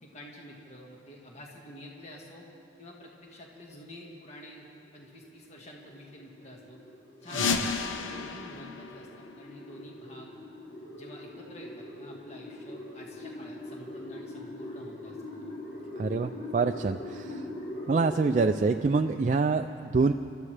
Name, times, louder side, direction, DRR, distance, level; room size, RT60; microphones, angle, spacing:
voice 1, 0.0-2.5 2.8-4.7 4.9-6.8 7.2-10.3 11.0-15.5, equal, 35° left, -2 dB, 1.7 m, -48 dB
sound 1, 4.2-18.5, left 1 dB, 55° left, 4.8 m, -42 dB
sound 2, 7.2-9.9, left 5 dB, 90° left, 0.9 m, -32 dB
voice 2, 16.0-17.5 17.9-20.1, right 4 dB, 40° right, 6 dB, 0.3 m, -26 dB
27.5 x 13.5 x 3.3 m, 2.5 s
head